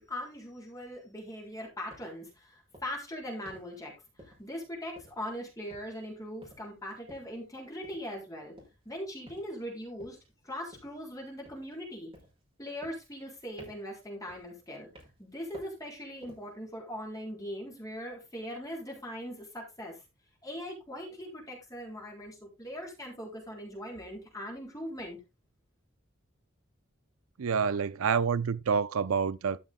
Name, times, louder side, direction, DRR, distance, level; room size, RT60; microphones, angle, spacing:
voice 1, 0.0-3.9 4.2-8.5 8.9-10.2 10.4-12.1 12.6-20.0 20.4-25.2, equal, 15° left, 3.9 m, -40 dB
sound 1, 1.9-2.1 2.7-3.0 3.4-3.7 4.2-4.6 5.0-5.4 5.7-6.0 6.4-6.7 7.1-7.4 7.8-8.1 8.6-8.9 9.3-9.6 10.0-10.3 10.7-11.0 11.4-11.8 12.1-12.4 12.8-13.3 13.6-13.9 14.3-14.6 14.9-15.3 15.5-15.8 16.2-16.5, equal, 25° right, 5.1 m, -54 dB
voice 2, 27.4-29.6, right 6 dB, 90° right, 0.5 m, -28 dB
13.0 x 6.2 x 3.7 m
head